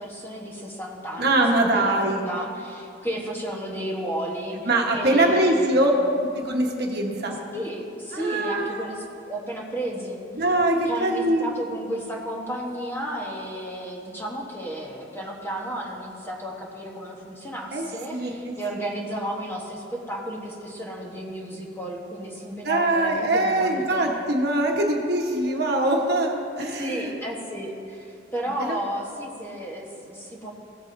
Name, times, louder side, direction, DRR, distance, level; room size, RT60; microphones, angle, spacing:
voice 1, 0.0-1.4 1.7-6.0 7.5-10.2 10.8-24.1 26.7-30.5, right 1 dB, 10° left, -2 dB, 1.1 m, -33 dB
voice 2, 1.2-2.2 4.7-5.9 6.2-7.4 8.1-8.9 10.3-11.6 17.7-18.9 22.6-27.1 28.6-28.8, right 1 dB, 55° right, 0 dB, 1.1 m, -23 dB
16.0 x 8.1 x 2.6 m, 2.5 s
head